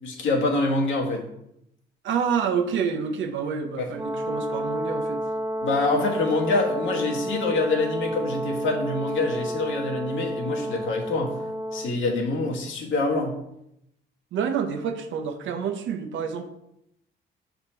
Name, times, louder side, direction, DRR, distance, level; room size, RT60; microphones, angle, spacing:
voice 1, 0.0-1.2 3.8-3.9 5.6-11.4 11.7-13.3, left 2 dB, 75° left, 0 dB, 1.5 m, -25 dB
voice 2, 2.0-5.3 14.3-16.4, right 7 dB, 75° right, 6 dB, 0.8 m, -28 dB
Brass instrument, 3.9-11.9, equal, 15° right, 1.3 m, -30 dB
6.2 x 4.0 x 4.4 m, 0.80 s
cardioid pair, 90°, 20 cm